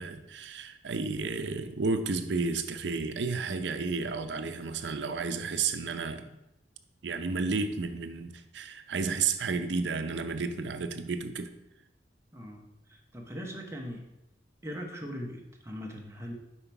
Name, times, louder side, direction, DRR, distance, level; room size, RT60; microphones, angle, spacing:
voice 1, 0.0-6.3 7.0-11.5, right 4 dB, 70° right, 8 dB, 0.5 m, -32 dB
voice 2, 12.3-14.1 14.6-16.3, equal, 15° right, 1 dB, 0.9 m, -40 dB
5.7 x 4.4 x 4.5 m, 0.92 s
head